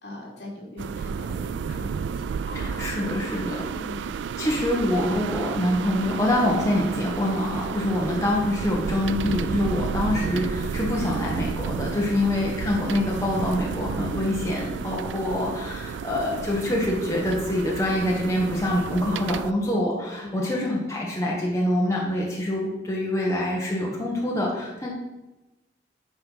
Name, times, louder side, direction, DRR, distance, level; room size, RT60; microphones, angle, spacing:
voice 1, 0.0-2.9 3.7-4.1 12.1-12.3 20.1-20.6, left 1 dB, 65° left, -4 dB, 3.0 m, -40 dB
sound 1, 0.8-19.5, right 6 dB, 80° right, 0.3 m, -32 dB
voice 2, 2.5-3.7 4.4-24.9, left 1 dB, 15° left, -3 dB, 1.2 m, -25 dB
9.5 x 4.6 x 5.6 m, 1.0 s
head